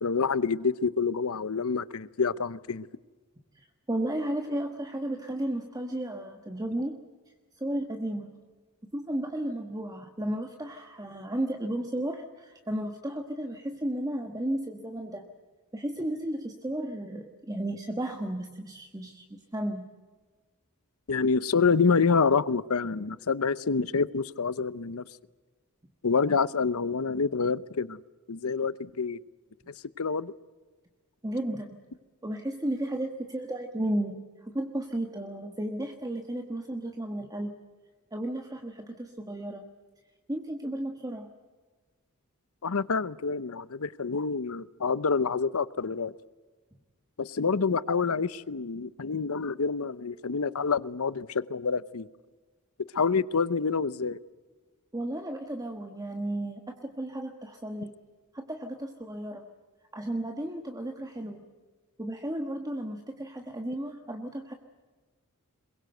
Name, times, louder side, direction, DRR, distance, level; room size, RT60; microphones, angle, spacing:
voice 1, 0.0-2.9 21.1-25.0 26.0-28.0 28.3-29.2 30.0-30.3 42.6-46.1 47.2-52.1 52.9-54.2, left 5 dB, 75° left, 0.7 m, -27 dB
voice 2, 3.5-7.0 7.6-8.3 8.9-15.3 15.7-19.9 31.2-31.7 32.2-37.5 38.1-39.6 40.3-41.3 54.9-57.9 58.3-59.4 59.9-61.4 62.0-64.5, right 1 dB, 15° right, 1.4 m, -33 dB
22.0 x 22.0 x 7.9 m
head